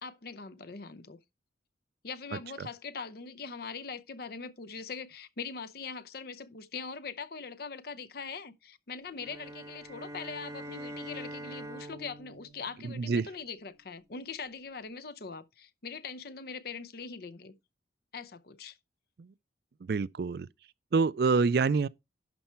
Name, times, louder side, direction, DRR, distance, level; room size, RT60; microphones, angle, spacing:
voice 1, 0.0-1.2 2.0-17.5 18.1-18.8, left 5 dB, 55° left, 0.7 m, -42 dB
voice 2, 2.3-2.7 12.8-13.3 19.2-19.3 19.8-20.5 20.9-21.9, right 4 dB, 55° right, 0.4 m, -27 dB
sound 1, 9.2-13.6, right 1 dB, 15° right, 0.8 m, -44 dB
11.5 x 4.5 x 4.4 m
head